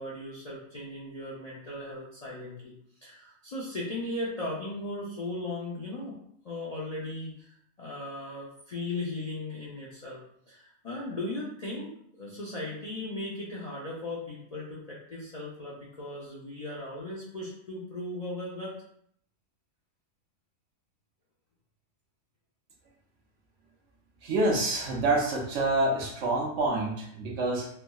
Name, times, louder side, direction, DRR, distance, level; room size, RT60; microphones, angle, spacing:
voice 1, 0.0-2.7 3.0-6.2 6.4-7.5 7.8-10.2 10.5-11.9 12.2-18.7, left 2 dB, 50° left, -6 dB, 0.4 m, -37 dB
voice 2, 24.2-27.7, right 2 dB, 65° right, 0 dB, 1.0 m, -27 dB
3.4 x 2.9 x 2.3 m, 0.68 s
omnidirectional pair, 1.4 m